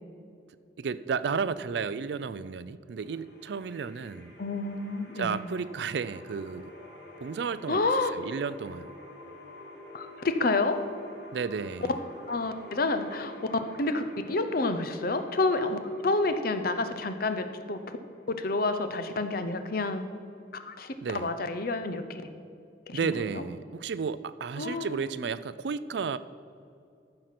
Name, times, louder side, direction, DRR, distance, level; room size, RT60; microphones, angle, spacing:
voice 1, 0.8-4.3 5.2-6.7 7.2-7.8 8.1-8.9 11.3-12.0 21.0-21.3 22.9-26.2, right 5 dB, 65° right, 15 dB, 0.4 m, -33 dB
sound 1, 3.0-21.9, left 1 dB, 85° left, 2.9 m, -49 dB
voice 2, 4.4-5.4 7.7-8.1 9.9-10.9 11.9-18.0 18.3-20.0 20.5-22.3 22.9-23.4 24.6-25.1, left 3 dB, 55° left, 9 dB, 0.7 m, -29 dB
14.0 x 5.8 x 5.9 m, 2.5 s
head